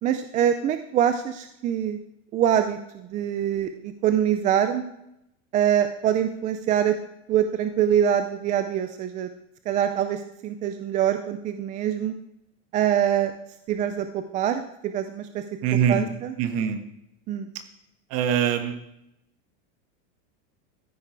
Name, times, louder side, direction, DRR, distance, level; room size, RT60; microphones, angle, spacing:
voice 1, 0.0-2.0 2.3-4.8 5.5-7.0 7.3-9.3 9.7-12.1 12.7-13.3 13.7-15.4 15.9-16.3 17.3-17.5, right 9 dB, 20° right, 9 dB, 0.4 m, -24 dB
voice 2, 15.6-16.0 16.4-16.8 18.1-18.7, right 8 dB, 40° right, 8 dB, 1.6 m, -23 dB
14.0 x 10.0 x 4.6 m, 0.81 s
supercardioid pair, 160°, 37 cm